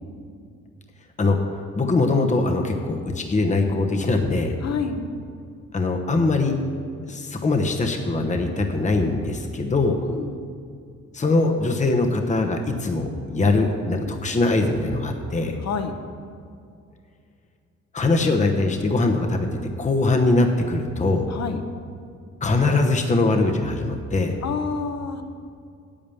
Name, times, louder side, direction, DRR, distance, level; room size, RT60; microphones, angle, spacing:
voice 1, 1.7-4.5 5.7-6.6 7.0-10.0 11.1-15.6 17.9-19.5 19.8-21.3 22.4-24.4, left 2 dB, 25° left, 4 dB, 1.0 m, -22 dB
voice 2, 4.6-5.0 10.0-10.4 15.6-15.9 21.3-21.6 24.4-25.2, left 6 dB, 60° left, 7 dB, 1.2 m, -28 dB
8.8 x 8.7 x 7.0 m, 2.3 s
cardioid pair, 90°, 30 cm